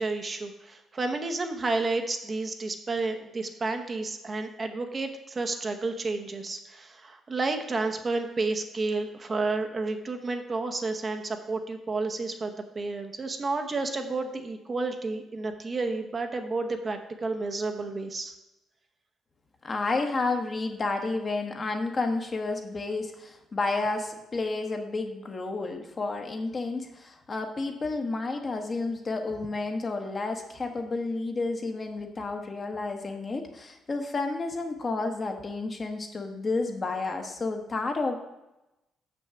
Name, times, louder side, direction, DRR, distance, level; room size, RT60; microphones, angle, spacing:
voice 1, 0.0-18.3, right 3 dB, 35° right, 5 dB, 1.0 m, -31 dB
voice 2, 19.6-38.2, left 3 dB, 35° left, 4 dB, 1.3 m, -31 dB
6.3 x 6.2 x 7.0 m, 0.94 s
cardioid pair, 90°, 0 cm